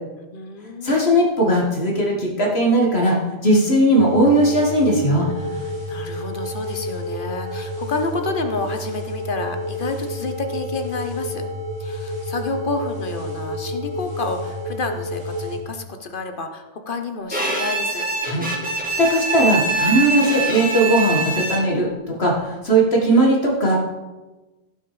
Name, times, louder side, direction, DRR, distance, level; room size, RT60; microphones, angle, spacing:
voice 1, 0.3-1.0 5.3-11.4 11.8-18.1, left 3 dB, 55° left, 6 dB, 1.2 m, -30 dB
voice 2, 0.8-5.3 18.2-18.4 19.0-23.8, right 1 dB, 80° left, -1 dB, 2.3 m, -18 dB
sound 1, 4.0-15.6, left 1 dB, 80° right, 3.1 m, -30 dB
Bowed string instrument, 17.3-21.9, right 3 dB, 10° right, 1.9 m, -24 dB
15.0 x 6.1 x 5.1 m, 1.1 s
omnidirectional pair, 1.1 m